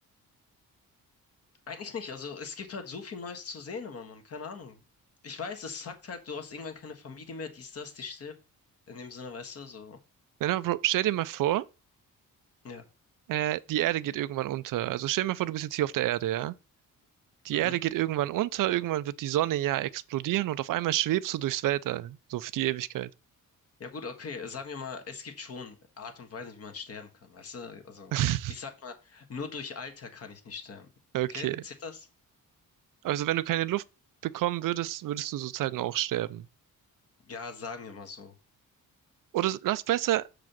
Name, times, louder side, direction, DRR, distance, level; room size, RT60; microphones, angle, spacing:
voice 1, 1.7-4.8 5.2-8.3 8.9-10.0 12.6-12.8 17.5-17.8 23.8-28.1 28.5-30.9 31.3-32.1 37.2-38.3, left 5 dB, 45° left, 1.5 m, -40 dB
voice 2, 10.4-11.6 13.3-16.5 17.4-23.1 28.1-28.5 31.1-31.6 33.0-33.8 34.2-36.5 39.3-40.3, right 14 dB, 75° right, 0.5 m, -28 dB
6.8 x 4.8 x 5.9 m
wide cardioid pair, 170°, 33 cm